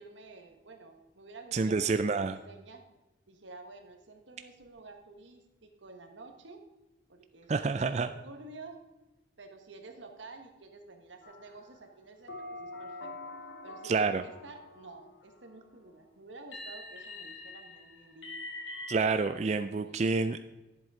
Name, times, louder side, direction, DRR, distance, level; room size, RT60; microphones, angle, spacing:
voice 1, 0.0-2.8 3.3-6.6 7.1-8.9 9.4-13.2 13.6-18.3 19.4-20.2, right 3 dB, 85° right, 5 dB, 1.4 m, -51 dB
voice 2, 1.5-2.4 7.5-8.1 13.8-14.2 18.9-20.5, right 4 dB, 35° right, 9 dB, 0.3 m, -28 dB
sound 1, 11.2-11.8 12.3-15.4 16.5-19.0, left 2 dB, 85° left, 2.0 m, -44 dB
10.5 x 7.5 x 4.8 m, 1.0 s
head